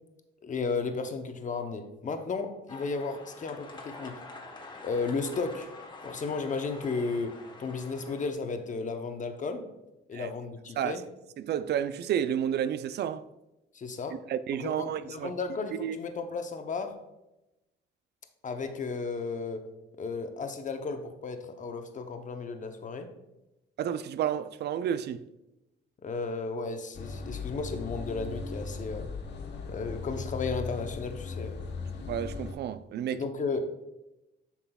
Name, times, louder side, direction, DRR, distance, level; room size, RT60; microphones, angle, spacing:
voice 1, 0.4-4.2 4.8-5.7 6.0-9.7 10.1-11.0 13.7-14.2 14.5-17.0 18.4-19.7 20.0-23.1 26.0-29.1 29.7-31.6 33.1-33.6, left 4 dB, 40° left, 0.8 m, -34 dB
sound 1, 2.7-8.3, left 3 dB, 25° left, 1.1 m, -46 dB
voice 2, 11.4-13.2 14.1-15.3 15.8-16.0 23.8-25.2 32.1-33.2, right 9 dB, 55° right, 0.4 m, -31 dB
sound 2, 26.9-32.5, left 4 dB, 60° left, 1.0 m, -38 dB
7.7 x 5.9 x 2.3 m
cardioid pair, 90°, 20 cm